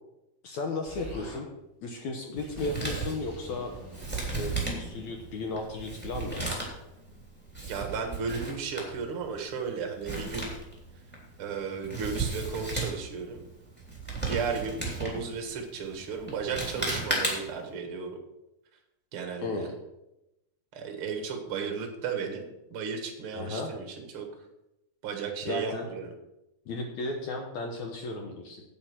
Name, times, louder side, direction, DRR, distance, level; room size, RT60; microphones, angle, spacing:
voice 1, 0.4-1.5 1.8-3.7 4.2-6.4 19.4-19.7 23.4-23.7 25.5-25.9 26.7-28.6, left 3 dB, 70° left, 3 dB, 1.8 m, -35 dB
Explosion, 0.9-1.4 2.2-6.1, right 1 dB, 45° left, 0.7 m, -45 dB
Male speech man speaking, 2.4-17.7, right 3 dB, 5° left, 2.2 m, -35 dB
voice 2, 7.6-10.5 11.4-13.5 14.2-18.1 19.1-19.7 20.7-24.3 25.0-26.1, right 5 dB, 55° right, 4 dB, 1.5 m, -34 dB
9.0 x 8.8 x 6.0 m, 0.91 s
omnidirectional pair, 4.7 m